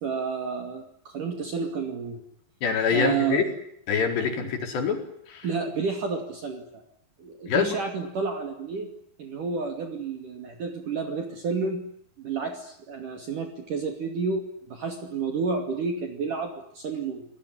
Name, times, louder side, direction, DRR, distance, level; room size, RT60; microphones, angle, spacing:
voice 1, 0.0-2.2 2.9-3.4 4.4-4.5 5.4-6.8 7.2-8.9 9.2-11.9 12.2-17.2, right 5 dB, 50° right, 5 dB, 3.8 m, -30 dB
voice 2, 2.6-3.4 3.9-5.0 5.3-5.5 7.5-7.8, left 6 dB, 65° left, 5 dB, 6.5 m, -25 dB
28.0 x 19.0 x 10.0 m, 0.72 s
omnidirectional pair, 5.3 m